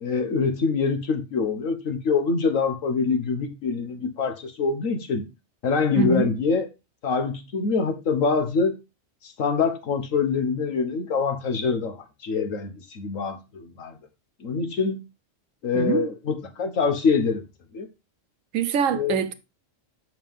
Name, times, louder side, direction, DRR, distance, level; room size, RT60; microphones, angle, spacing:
voice 1, 0.0-5.2 5.6-6.7 7.0-8.7 9.2-14.0 14.4-15.0 15.6-17.4 17.7-17.9 18.9-19.3, left 5 dB, 90° left, 1.5 m, -25 dB
voice 2, 15.7-16.1 18.5-19.3, right 6 dB, 85° right, 1.2 m, -24 dB
7.3 x 5.7 x 3.5 m
omnidirectional pair, 1.3 m